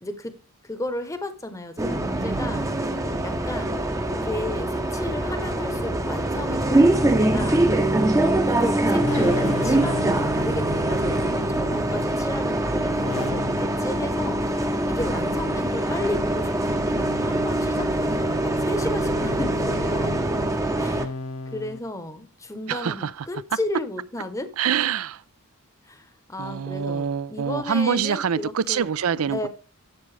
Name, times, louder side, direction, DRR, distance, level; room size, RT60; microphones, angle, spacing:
voice 1, 0.0-0.3 0.6-2.7 3.2-3.8 4.1-7.6 8.1-14.4 14.9-20.2 20.8-21.1 21.5-24.5 25.8-28.9 29.3-29.5, left 1 dB, 15° left, 0.9 m, -33 dB
Bus, 1.8-21.1, right 1 dB, 15° right, 0.7 m, -23 dB
sound 1, 5.5-12.5 13.0-14.1 15.0-16.1 17.0-18.2 19.0-21.8, left 2 dB, 70° left, 1.2 m, -37 dB
voice 2, 22.7-23.3 24.6-25.2 26.4-29.5, right 7 dB, 75° right, 0.4 m, -25 dB
11.0 x 7.3 x 3.3 m
head